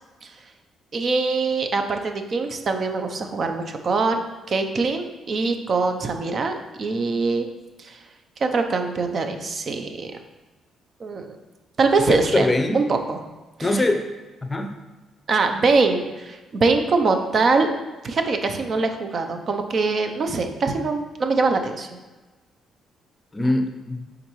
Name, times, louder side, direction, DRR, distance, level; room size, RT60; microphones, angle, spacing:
voice 1, 0.9-4.2 4.5-7.5 7.8-8.0 8.4-10.2 11.0-11.4 11.8-13.2 13.6-13.7 15.3-17.7 18.0-22.0, right 4 dB, 50° right, 6 dB, 0.7 m, -23 dB
voice 2, 12.1-12.8 13.6-14.1 14.5-14.7 23.3-24.1, left 2 dB, 20° left, 6 dB, 0.6 m, -22 dB
8.7 x 3.8 x 3.1 m, 1.2 s
cardioid pair, 90°, 0 cm